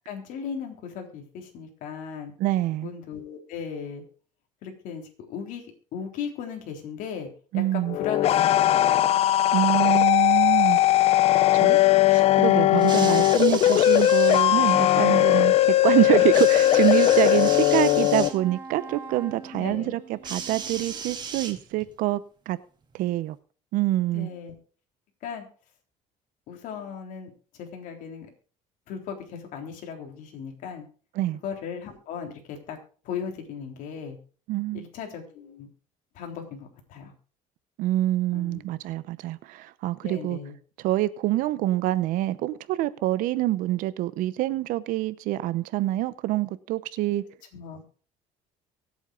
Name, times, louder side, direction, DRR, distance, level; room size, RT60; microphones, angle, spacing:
voice 1, 0.1-2.3 2.8-4.0 4.6-5.7 5.9-7.3 7.5-8.8 12.7-13.2 19.5-19.9 24.1-24.5 25.2-25.4 26.5-27.3 27.6-28.3 28.9-30.9 31.4-32.8 33.0-34.2 34.7-35.7 36.1-37.1 38.3-38.6 40.0-40.6 47.5-47.8, left 7 dB, 65° left, 3.7 m, -37 dB
voice 2, 2.4-2.9 7.5-8.0 9.5-10.8 11.6-11.8 12.1-22.2 22.5-22.6 22.9-23.4 23.7-24.3 31.2-31.4 34.5-34.8 37.8-40.4 40.8-47.2, right 15 dB, 70° right, 0.8 m, -26 dB
sound 1, 7.9-18.3, left 14 dB, 45° left, 0.5 m, -19 dB
sound 2, 12.8-14.5 16.3-18.4 20.2-21.9 22.9-23.0, right 6 dB, 30° right, 2.1 m, -36 dB
Wind instrument woodwind instrument, 16.5-21.4, right 4 dB, 15° right, 4.4 m, -44 dB
24.0 x 8.2 x 2.5 m
cardioid pair, 135°, 14 cm